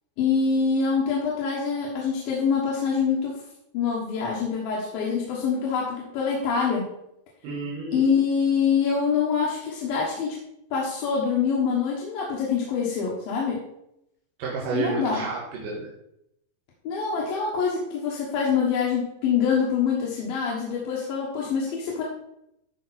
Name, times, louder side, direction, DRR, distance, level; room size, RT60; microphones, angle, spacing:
voice 1, 0.2-3.4 3.7-6.9 7.9-10.4 10.7-13.6 14.7-15.2 16.8-22.0, left 6 dB, 65° left, -4 dB, 3.0 m, -25 dB
voice 2, 7.4-8.1 14.4-15.9, right 4 dB, 60° right, -4 dB, 2.7 m, -31 dB
13.5 x 5.3 x 4.3 m, 0.81 s
omnidirectional pair, 5.1 m